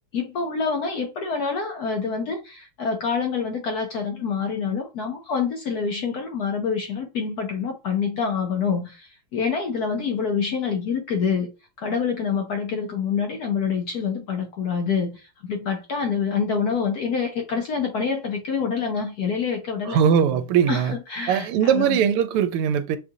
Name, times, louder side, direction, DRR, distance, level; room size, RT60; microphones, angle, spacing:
voice 1, 0.1-11.5 11.8-20.0 20.7-22.0, left 6 dB, 65° left, 0.9 m, -26 dB
voice 2, 19.9-21.0 21.3-23.0, right 8 dB, 85° right, 1.5 m, -20 dB
6.4 x 2.5 x 2.7 m
omnidirectional pair, 2.4 m